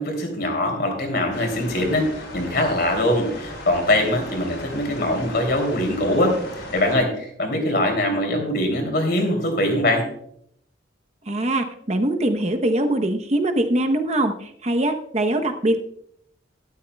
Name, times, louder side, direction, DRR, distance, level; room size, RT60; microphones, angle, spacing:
voice 1, 0.0-2.1 2.3-6.4 6.7-10.0, left 1 dB, 55° left, 3 dB, 2.9 m, -22 dB
sound 1, 1.3-7.0, left 1 dB, 70° left, 3.8 m, -37 dB
voice 2, 11.3-15.8, right 1 dB, 35° right, 6 dB, 0.9 m, -22 dB
13.0 x 12.0 x 2.3 m, 0.69 s
head